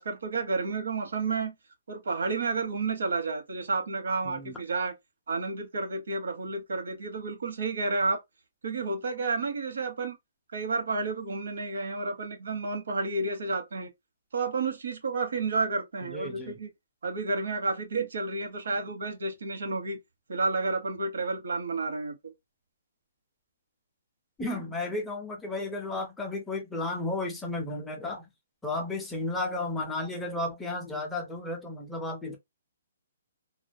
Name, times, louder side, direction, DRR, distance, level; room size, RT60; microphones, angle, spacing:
voice 1, 0.0-1.5 1.9-4.9 5.3-8.2 8.6-10.2 10.5-13.9 14.3-16.7 17.0-20.0 20.3-22.3, right 3 dB, 75° right, 0.9 m, -31 dB
voice 2, 4.2-4.6 16.0-16.5 24.4-28.3 28.6-32.4, left 2 dB, 5° left, 0.4 m, -33 dB
2.2 x 2.1 x 2.5 m
hypercardioid pair, 175°, 0 cm